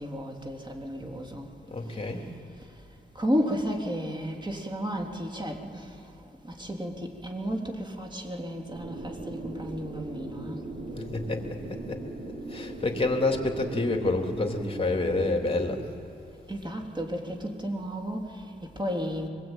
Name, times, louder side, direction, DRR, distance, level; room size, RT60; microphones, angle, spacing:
voice 1, 0.0-1.5 3.2-6.0 6.4-10.6 16.5-19.3, equal, 25° right, 2 dB, 3.5 m, -33 dB
voice 2, 1.7-2.2 10.9-12.0 12.5-15.9, left 2 dB, 30° left, 3 dB, 3.4 m, -28 dB
sound 1, 8.7-15.6, right 2 dB, 85° right, 4.1 m, -40 dB
24.0 x 21.5 x 9.1 m, 2.8 s
cardioid pair, 60°, 19 cm